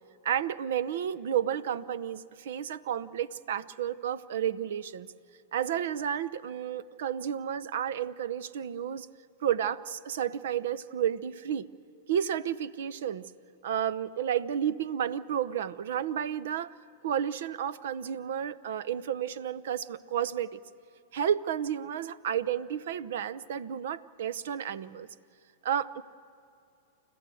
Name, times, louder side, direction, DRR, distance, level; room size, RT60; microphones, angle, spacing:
voice 1, 0.2-5.1 5.5-9.1 9.4-11.7 12.1-13.2 13.6-16.7 17.0-20.6 21.1-25.1 25.6-26.0, right 9 dB, 70° right, 17 dB, 0.8 m, -31 dB
29.5 x 14.0 x 7.8 m, 2.6 s
hypercardioid pair, 115°, 0 cm